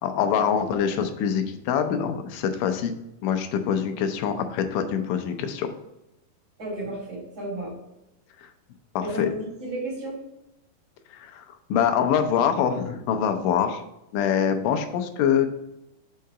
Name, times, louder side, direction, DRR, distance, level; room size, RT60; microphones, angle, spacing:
voice 1, 0.0-2.9 3.2-5.7 9.2-9.3 11.1-11.4 11.7-13.8 14.1-15.5, left 8 dB, 80° left, 6 dB, 2.3 m, -24 dB
voice 2, 6.6-7.7 9.0-10.2, right 1 dB, 40° right, -6 dB, 2.7 m, -33 dB
5.7 x 3.8 x 5.5 m, 0.89 s
omnidirectional pair, 3.8 m